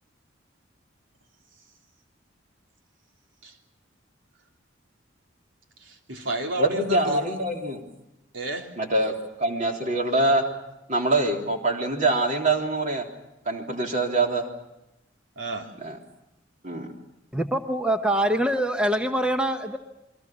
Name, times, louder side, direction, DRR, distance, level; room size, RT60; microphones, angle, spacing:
voice 1, 5.8-7.4 8.3-8.7 15.3-15.7, right 2 dB, 85° right, 2 dB, 3.3 m, -32 dB
voice 2, 6.6-7.8 8.8-9.1 9.4-10.4 10.9-13.0 13.5-14.4 15.8-16.0 16.6-16.9, right 2 dB, 40° right, 2 dB, 3.5 m, -24 dB
voice 3, 17.3-19.8, right 1 dB, 5° right, 5 dB, 1.0 m, -24 dB
28.0 x 22.5 x 6.2 m, 0.92 s
head